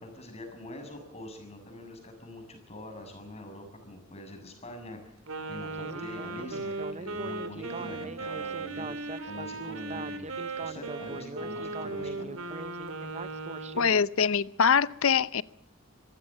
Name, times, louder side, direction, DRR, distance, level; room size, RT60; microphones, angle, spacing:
voice 1, 0.0-5.1 5.5-10.3 10.6-12.4, left 1 dB, 30° left, 5 dB, 6.8 m, -44 dB
Wind instrument woodwind instrument, 5.3-13.9, right 3 dB, 80° right, 3.0 m, -37 dB
Speech synthesizer, 5.7-14.1, right 3 dB, 30° right, 0.8 m, -41 dB
voice 2, 13.8-15.4, left 6 dB, 70° left, 18 dB, 0.8 m, -24 dB
25.5 x 15.5 x 7.5 m, 0.75 s
head